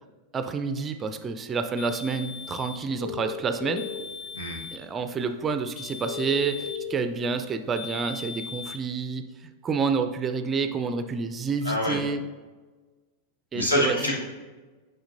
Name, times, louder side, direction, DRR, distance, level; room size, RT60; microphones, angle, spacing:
voice 1, 0.3-3.9 4.7-12.2 13.5-14.0, right 5 dB, 20° right, 8 dB, 0.4 m, -29 dB
sound 1, 1.8-2.9 3.8-4.9 5.8-6.9 7.8-8.8, left 6 dB, 30° left, 0.9 m, -39 dB
sound 2, 3.0-4.0 6.0-7.0, left 7 dB, 60° left, 0.7 m, -34 dB
voice 2, 11.6-12.0 13.5-14.1, equal, 75° left, -2 dB, 1.5 m, -25 dB
8.6 x 5.5 x 2.6 m, 1.3 s
figure-of-eight pair, 90°, 0 cm